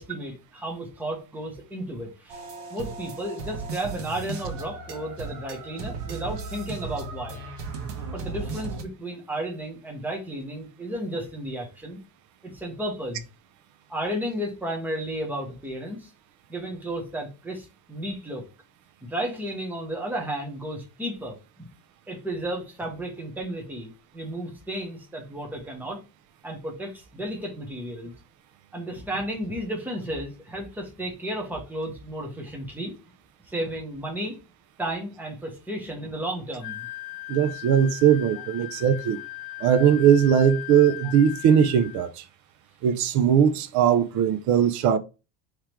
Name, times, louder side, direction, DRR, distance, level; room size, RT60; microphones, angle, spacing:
voice 1, 0.0-2.4 2.7-7.4 8.1-12.0 12.4-13.2 13.9-16.1 16.5-18.4 19.1-21.7 22.1-26.0 26.4-28.1 28.7-32.9 33.5-34.4 34.8-36.9, right 1 dB, 5° right, 1.0 m, -33 dB
sound 1, 2.3-8.8, right 4 dB, 90° right, 1.2 m, -36 dB
Wind instrument woodwind instrument, 36.6-42.1, left 18 dB, 75° left, 0.5 m, -38 dB
voice 2, 37.3-39.2 39.6-42.2 42.8-45.0, right 8 dB, 50° right, 0.5 m, -20 dB
3.6 x 3.2 x 4.4 m
cardioid pair, 160°, 38 cm